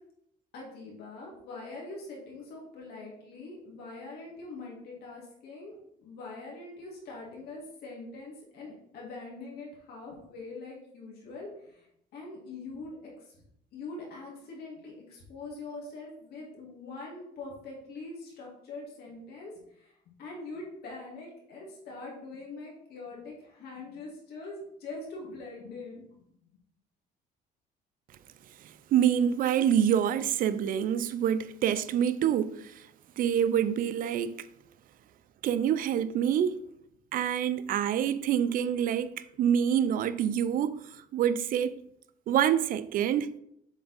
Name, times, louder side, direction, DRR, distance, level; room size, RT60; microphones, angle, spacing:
voice 1, 0.5-11.8 12.1-13.1 13.7-26.0, left 3 dB, 70° left, 1.9 m, -43 dB
voice 2, 28.6-32.9 33.2-34.5 35.4-36.6 37.1-41.8 42.3-43.3, right 9 dB, 55° right, 0.4 m, -27 dB
7.2 x 3.4 x 4.0 m
cardioid pair, 110°, 17 cm